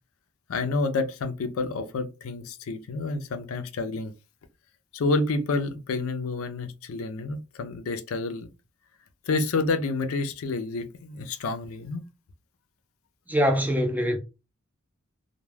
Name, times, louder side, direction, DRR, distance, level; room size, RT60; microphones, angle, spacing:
voice 1, 0.5-4.1 4.9-8.5 9.3-12.0, left 3 dB, 80° left, 0.4 m, -29 dB
voice 2, 13.3-14.2, equal, 10° right, 0.4 m, -23 dB
2.2 x 2.1 x 3.2 m
head